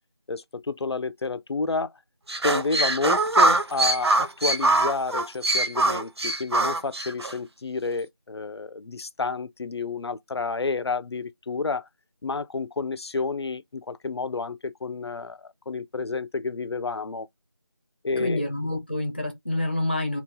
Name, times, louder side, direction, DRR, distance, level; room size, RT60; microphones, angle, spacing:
voice 1, 0.3-1.9 2.4-11.9 12.2-17.3 18.0-18.5, left 4 dB, 85° left, 0.4 m, -30 dB
sound 1, 2.3-7.3, right 2 dB, 85° right, 0.8 m, -23 dB
voice 2, 18.2-20.2, left 1 dB, 25° left, 0.5 m, -27 dB
2.8 x 2.3 x 3.6 m
figure-of-eight pair, 175°, 13 cm